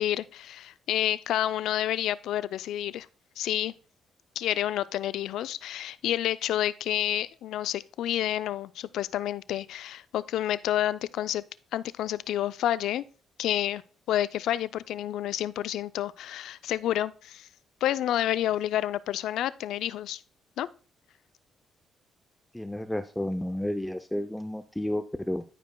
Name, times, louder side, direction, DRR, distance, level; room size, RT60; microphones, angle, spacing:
voice 1, 0.0-3.1 3.4-3.7 4.4-11.4 11.7-13.0 13.4-13.8 14.1-17.5 17.8-20.2 20.6-20.7, left 12 dB, 80° left, 0.3 m, -29 dB
voice 2, 22.5-25.4, left 1 dB, 5° left, 0.5 m, -31 dB
13.5 x 5.1 x 2.2 m
cardioid pair, 90°, 0 cm